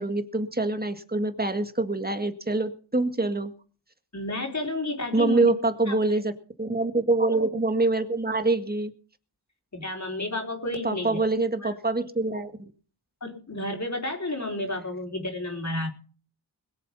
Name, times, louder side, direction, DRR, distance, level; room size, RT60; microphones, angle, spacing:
voice 1, 0.0-3.5 5.1-6.3 6.6-8.9 10.8-12.5, right 2 dB, 20° right, 8 dB, 1.9 m, -25 dB
voice 2, 4.1-5.5 5.8-5.9 7.2-7.4 9.7-11.2 11.6-11.8 13.2-15.9, left 2 dB, 40° left, 1 dB, 4.5 m, -31 dB
22.0 x 7.7 x 5.5 m, 0.41 s
wide cardioid pair, 55°, 42 cm